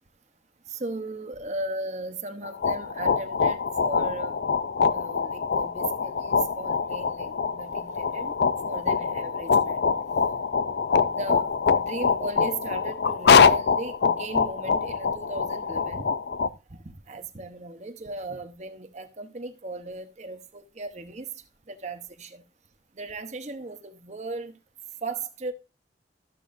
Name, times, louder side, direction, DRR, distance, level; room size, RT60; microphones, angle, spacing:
voice 1, 0.7-4.4 4.9-8.4 8.7-9.8 11.0-16.1 16.7-21.3 21.7-22.4 23.0-24.6 25.0-25.5, right 2 dB, 40° right, 0.8 m, -37 dB
sound 1, 2.4-16.5, left 5 dB, 60° left, 0.4 m, -24 dB
13.5 x 7.6 x 2.6 m
head